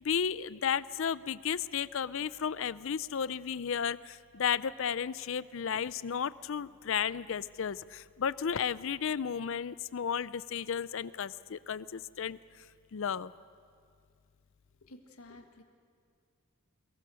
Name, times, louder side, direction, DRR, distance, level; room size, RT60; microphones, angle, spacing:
voice 1, 0.0-12.4 12.9-13.3, left 7 dB, 60° left, 17 dB, 0.5 m, -33 dB
voice 2, 14.9-15.6, left 2 dB, 80° left, 4 dB, 1.6 m, -52 dB
23.0 x 22.0 x 6.4 m, 2.2 s
head